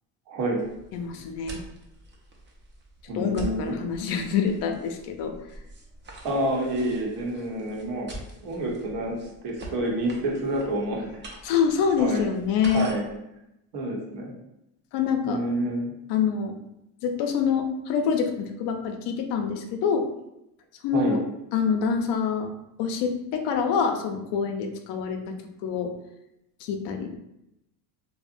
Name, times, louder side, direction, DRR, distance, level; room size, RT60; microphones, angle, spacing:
voice 1, 0.3-0.6 3.1-3.8 6.2-8.1 8.4-9.2 9.4-11.2 12.0-12.3 12.7-13.0 13.7-14.3 15.3-15.9 20.9-21.2, right 1 dB, 65° right, -1 dB, 0.9 m, -28 dB
sound 1, 0.6-13.2, right 2 dB, 25° right, 0.5 m, -44 dB
voice 2, 0.9-1.6 3.1-5.3 11.4-12.9 14.9-15.4 16.1-16.5 17.0-20.0 20.8-21.2 21.5-22.5 22.8-25.4 25.6-25.9 26.6-27.1, left 6 dB, 75° left, 5 dB, 0.5 m, -26 dB
2.7 x 2.1 x 2.5 m, 0.86 s
cardioid pair, 100°, 42 cm